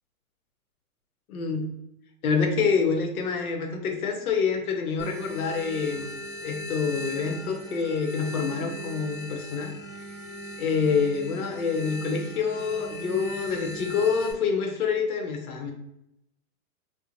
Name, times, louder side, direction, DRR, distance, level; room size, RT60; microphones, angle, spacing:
voice 1, 1.3-1.7 2.2-6.1 6.4-9.7 10.6-15.7, left 5 dB, 80° left, 3 dB, 0.8 m, -27 dB
sound 1, 5.0-14.3, equal, 5° left, 0.3 m, -39 dB
2.4 x 2.1 x 2.9 m, 0.83 s
hypercardioid pair, 115°, 43 cm